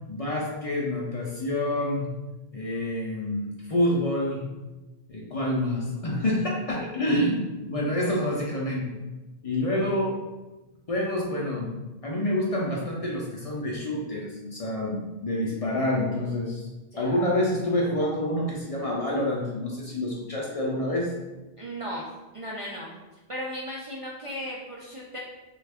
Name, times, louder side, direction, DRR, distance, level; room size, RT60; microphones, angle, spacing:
voice 1, 0.1-2.1 2.5-4.5 5.1-9.0 9.4-10.2 10.9-11.7 12.0-16.7 17.0-21.1, left 1 dB, 45° left, -3 dB, 0.5 m, -27 dB
voice 2, 21.6-22.1 22.3-23.0 23.3-25.2, equal, 50° right, -4 dB, 0.4 m, -36 dB
3.3 x 2.3 x 3.4 m, 1.1 s
omnidirectional pair, 1.0 m